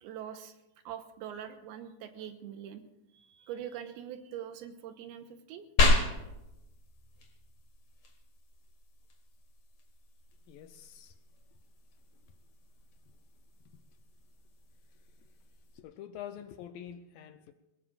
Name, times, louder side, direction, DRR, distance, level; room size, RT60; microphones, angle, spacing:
voice 1, 0.0-0.5 0.9-2.8 3.1-5.7 6.0-6.1, right 9 dB, 90° right, 7 dB, 3.0 m, -43 dB
sound 1, 5.8-15.8, left 2 dB, 50° left, 2.2 m, -34 dB
voice 2, 10.5-11.1 15.8-17.5, left 10 dB, 80° left, 9 dB, 2.1 m, -46 dB
21.5 x 20.0 x 2.5 m, 0.95 s
omnidirectional pair, 4.4 m